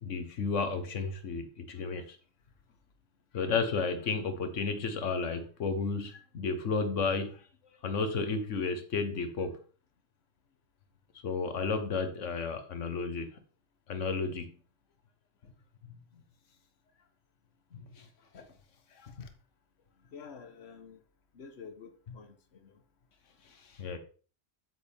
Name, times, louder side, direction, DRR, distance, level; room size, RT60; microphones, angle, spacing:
voice 1, 0.0-2.2 3.3-7.4 7.8-9.6 11.2-13.4 13.9-14.5 17.7-18.1 18.3-18.5 23.7-24.0, left 4 dB, 90° left, 1.5 m, -32 dB
voice 2, 20.1-21.0 21.4-22.3, left 5 dB, 60° left, 1.4 m, -47 dB
8.6 x 8.4 x 3.5 m
omnidirectional pair, 1.2 m